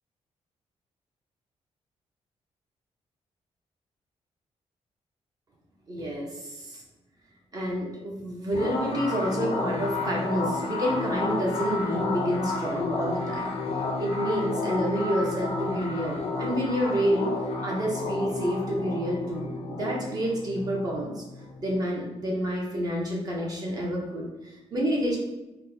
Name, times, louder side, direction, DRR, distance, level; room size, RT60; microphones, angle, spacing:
voice 1, 5.9-6.8 7.5-17.3 17.6-21.2 21.6-25.2, equal, 35° right, -2 dB, 0.5 m, -29 dB
sound 1, 8.5-21.7, left 3 dB, 60° left, 0.4 m, -31 dB
4.2 x 2.0 x 2.6 m, 1.0 s
wide cardioid pair, 170°, 12 cm